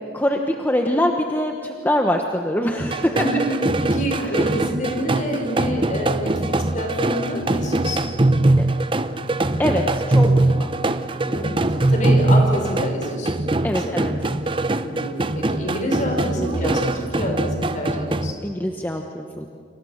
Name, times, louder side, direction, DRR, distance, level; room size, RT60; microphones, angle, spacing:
voice 1, 0.0-3.2 4.2-4.4 8.6-8.7 9.6-10.7 13.6-14.1 16.3-16.8 18.4-19.5, equal, 10° left, 2 dB, 1.1 m, -24 dB
sound 1, 2.8-18.3, right 2 dB, 25° right, 0.7 m, -22 dB
voice 2, 3.1-8.0 11.3-13.4 13.8-14.0 14.8-18.3, equal, 40° left, 2 dB, 5.5 m, -27 dB
29.5 x 27.0 x 6.6 m, 2.3 s
head